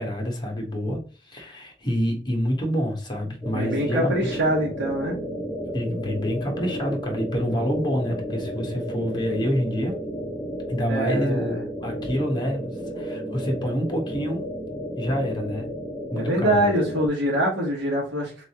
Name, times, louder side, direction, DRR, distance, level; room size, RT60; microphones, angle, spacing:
voice 1, 0.0-4.4 5.7-10.0 10.7-14.5 15.0-15.7 16.1-16.7, equal, 25° left, 2 dB, 1.3 m, -27 dB
sound 1, 3.4-17.1, equal, 5° right, 1.1 m, -33 dB
voice 2, 3.5-5.2 10.9-11.6 16.1-18.4, right 1 dB, 70° right, -4 dB, 1.5 m, -24 dB
4.0 x 3.6 x 2.9 m, 0.39 s
head